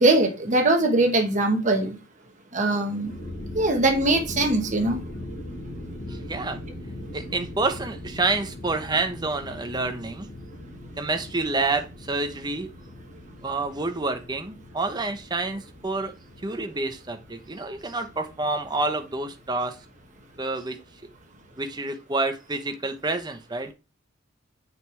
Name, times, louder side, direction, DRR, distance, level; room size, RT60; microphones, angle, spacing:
voice 1, 0.0-1.9 2.5-3.1 3.5-5.0, right 2 dB, 40° right, 1.3 m, -21 dB
sound 1, 2.9-21.8, left 1 dB, 25° left, 3.9 m, -41 dB
voice 2, 6.1-6.6 7.1-10.3 11.0-12.7 13.4-16.1 16.4-19.7 20.4-20.8 21.6-23.7, right 3 dB, 20° right, 0.8 m, -28 dB
6.4 x 5.4 x 3.3 m
head